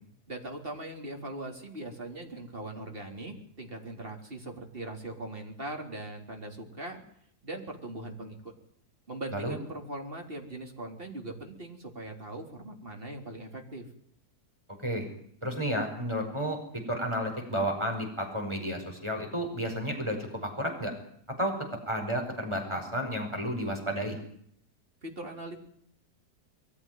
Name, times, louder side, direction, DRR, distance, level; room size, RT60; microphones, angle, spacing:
voice 1, 0.3-7.0 7.4-8.5 9.1-13.9 25.0-25.6, right 1 dB, 35° right, 2 dB, 4.1 m, -40 dB
voice 2, 15.4-16.6 16.9-20.9 21.4-21.5 21.8-24.2, equal, 15° right, 2 dB, 5.5 m, -31 dB
22.5 x 15.5 x 9.5 m, 0.66 s
omnidirectional pair, 1.7 m